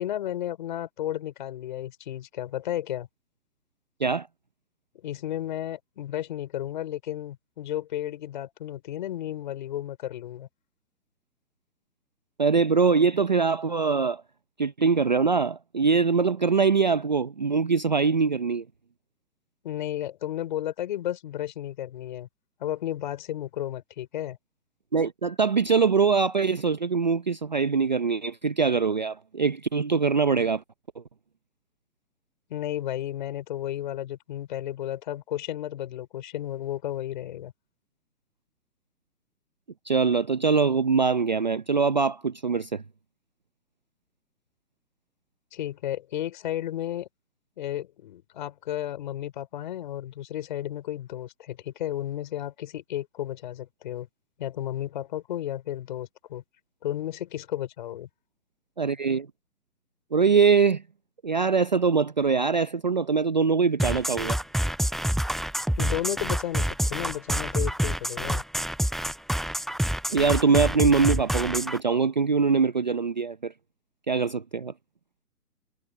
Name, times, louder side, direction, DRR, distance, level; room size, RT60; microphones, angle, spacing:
voice 1, 0.0-3.1 5.0-10.5 19.6-22.3 22.6-24.4 32.5-37.5 45.5-47.1 47.6-54.1 54.4-56.4 56.8-58.1 65.8-68.4, left 12 dB, 30° left, 4.3 m, -33 dB
voice 2, 12.4-14.2 14.6-18.6 24.9-30.6 39.9-42.8 58.8-59.3 60.1-60.8 61.2-64.4 70.1-73.5 74.1-74.7, right 5 dB, 30° right, 0.7 m, -23 dB
sound 1, 63.8-71.8, equal, ahead, 0.3 m, -27 dB
hypercardioid pair, 165°, 47 cm